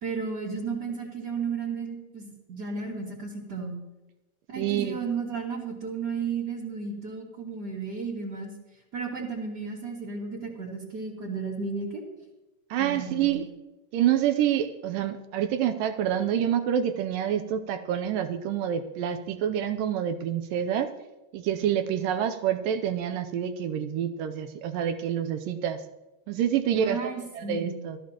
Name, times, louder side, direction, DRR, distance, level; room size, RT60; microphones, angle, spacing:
voice 1, 0.0-3.8 4.5-8.5 8.9-12.0 12.8-13.3 26.7-27.8, right 5 dB, 35° right, -3 dB, 1.9 m, -33 dB
voice 2, 4.6-5.1 12.7-13.5 13.9-20.9 21.3-25.8 26.3-27.0 27.3-28.0, right 10 dB, 80° right, 9 dB, 2.0 m, -27 dB
20.0 x 13.5 x 2.9 m, 1.1 s
omnidirectional pair, 4.6 m